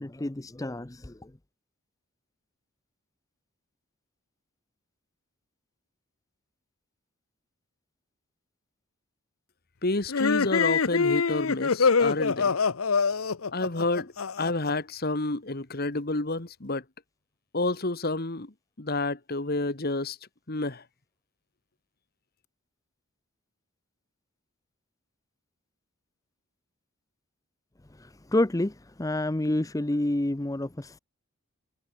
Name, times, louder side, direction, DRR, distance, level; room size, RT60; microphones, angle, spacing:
voice 1, 0.0-1.3 27.9-31.0, left 1 dB, 15° left, 0.6 m, -29 dB
voice 2, 9.8-12.5 13.5-14.1 14.4-16.8 17.5-20.2 20.5-20.8, left 2 dB, 50° left, 1.8 m, -29 dB
sound 1, 10.1-14.7, left 5 dB, 85° left, 0.8 m, -25 dB
head